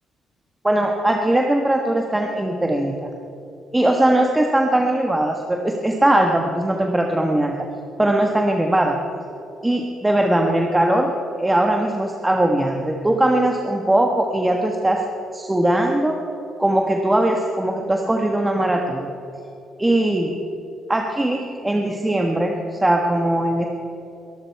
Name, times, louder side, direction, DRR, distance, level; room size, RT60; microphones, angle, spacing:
voice 1, 0.6-3.1 3.7-7.7 8.0-9.0 9.6-15.0 15.3-16.2 16.6-19.1 19.8-20.4 20.9-23.6, right 1 dB, 10° right, 2 dB, 1.4 m, -20 dB
23.0 x 12.0 x 4.7 m, 2.8 s
cardioid pair, 90°, 0 cm